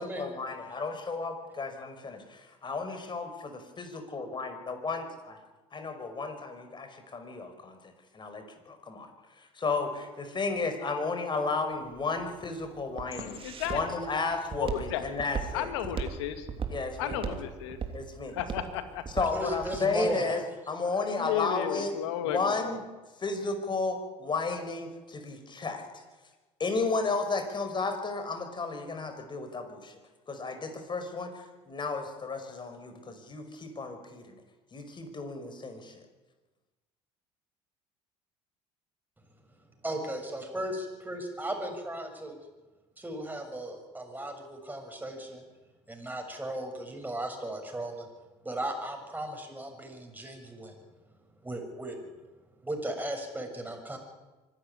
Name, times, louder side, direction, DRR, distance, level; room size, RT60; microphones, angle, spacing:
voice 1, 0.0-5.4 5.7-7.8 8.1-9.1 9.4-13.4 13.7-15.7 16.7-17.2 17.9-18.4 19.2-20.4 20.7-21.9 22.2-22.8 23.2-25.8 26.6-30.0 30.3-34.3 34.7-36.0, left 4 dB, 35° left, 7 dB, 5.3 m, -33 dB
Walk footsteps, 11.7-19.9, right 6 dB, 40° right, 3.1 m, -37 dB
voice 2, 13.1-13.8 14.6-15.1 15.5-16.5 17.0-17.8 18.3-19.0 20.1-20.2 20.8-22.8, left 10 dB, 85° left, 9 dB, 2.2 m, -34 dB
voice 3, 19.3-20.4 39.8-40.7 41.0-42.3 43.0-45.4 45.9-48.1 48.4-50.7 51.4-52.0 52.6-54.0, right 1 dB, 10° right, 3 dB, 6.9 m, -36 dB
24.5 x 12.5 x 9.8 m, 1.2 s
hypercardioid pair, 70°, 14 cm